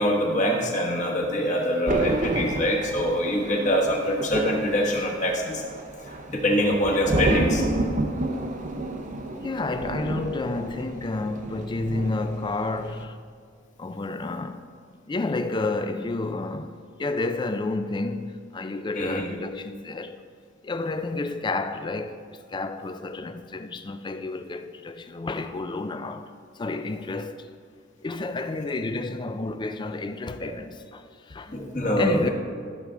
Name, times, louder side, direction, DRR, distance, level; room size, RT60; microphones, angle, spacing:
voice 1, 0.0-5.6 6.3-7.6 19.0-19.2 31.5-32.3, equal, 40° left, 1.3 m, -24 dB
Thunder, 1.9-12.5 12.7-13.0, right 1 dB, 40° right, 0.7 m, -30 dB
voice 2, 9.4-13.2 13.8-14.6 15.1-20.2 20.6-26.3 26.6-27.5 28.0-31.6 32.0-32.3, left 2 dB, 20° left, 0.3 m, -30 dB
12.5 x 6.1 x 3.8 m
head